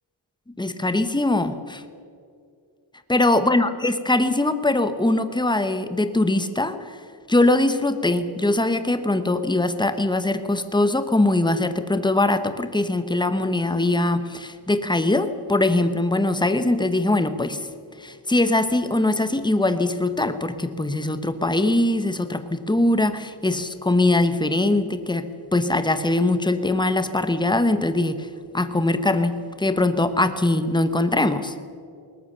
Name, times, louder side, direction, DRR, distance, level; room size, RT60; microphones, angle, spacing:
voice 1, 0.6-1.8 3.1-7.0 7.3-17.7 18.0-25.3 25.5-28.3 28.5-31.6, left 2 dB, 10° left, 10 dB, 1.1 m, -22 dB
21.0 x 19.0 x 6.8 m, 2.3 s
wide cardioid pair, 100°, 50 cm